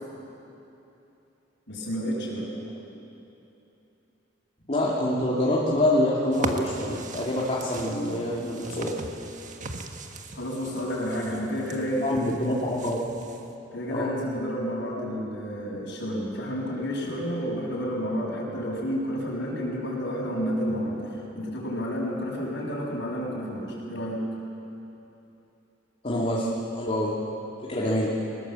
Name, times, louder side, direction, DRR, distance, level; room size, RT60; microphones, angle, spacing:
voice 1, 1.7-2.5 10.3-12.4 13.7-24.2 27.8-28.1, equal, 70° left, -3 dB, 6.8 m, -30 dB
voice 2, 4.7-8.9 12.0-13.0 13.9-14.1 26.0-26.5 26.7-27.1 27.7-28.1, left 1 dB, 35° left, -5 dB, 2.5 m, -26 dB
sound 1, 6.3-13.5, right 2 dB, 40° right, 1.5 m, -38 dB
23.0 x 20.5 x 7.7 m, 2.9 s
head